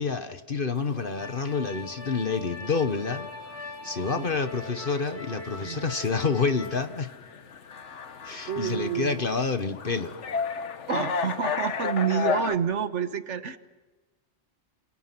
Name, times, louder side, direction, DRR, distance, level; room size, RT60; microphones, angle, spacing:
voice 1, 0.0-3.3 3.6-7.1 8.2-10.1, left 4 dB, 50° left, 9 dB, 1.5 m, -28 dB
sound 1, 0.8-12.6, left 6 dB, 80° left, 1.4 m, -35 dB
sound 2, 1.2-6.8, left 2 dB, 15° left, 4.8 m, -41 dB
voice 2, 8.5-9.4 10.9-13.6, right 7 dB, 80° right, 10 dB, 1.6 m, -29 dB
29.0 x 28.5 x 6.1 m, 1.3 s
omnidirectional pair, 1.2 m